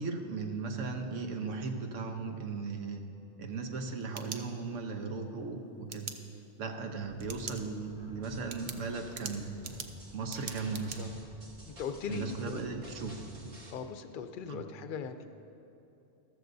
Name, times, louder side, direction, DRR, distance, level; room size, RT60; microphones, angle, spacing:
voice 1, 0.0-3.0 3.4-6.1 6.6-9.5 10.1-11.0 12.1-13.2 14.5-14.6, right 4 dB, 90° right, 4 dB, 1.3 m, -37 dB
sound 1, 3.8-5.0 5.9-6.2 7.2-7.6 8.0-8.1 8.5-11.0, right 6 dB, 50° right, 0.6 m, -42 dB
sound 2, 7.0-13.2, left 1 dB, 15° right, 1.3 m, -55 dB
sound 3, 8.2-13.7, right 1 dB, 65° right, 1.9 m, -50 dB
voice 2, 11.0-11.3 11.7-12.6 13.7-15.3, left 7 dB, 55° left, 8 dB, 0.7 m, -40 dB
14.0 x 13.5 x 2.6 m, 2.9 s
omnidirectional pair, 1.2 m